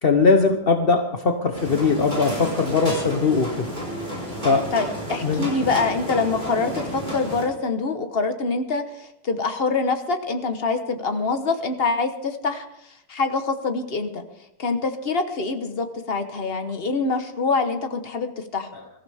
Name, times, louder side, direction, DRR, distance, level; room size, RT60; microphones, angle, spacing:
voice 1, 0.0-3.7 4.4-4.7 5.2-5.5, left 4 dB, 50° left, 5 dB, 0.6 m, -20 dB
sound 1, 1.5-7.4, equal, 20° right, 5.1 m, -31 dB
voice 2, 4.7-12.7 13.1-14.2 14.6-18.7, left 4 dB, 35° left, 7 dB, 1.0 m, -25 dB
23.5 x 14.5 x 3.5 m, 0.81 s
omnidirectional pair, 2.4 m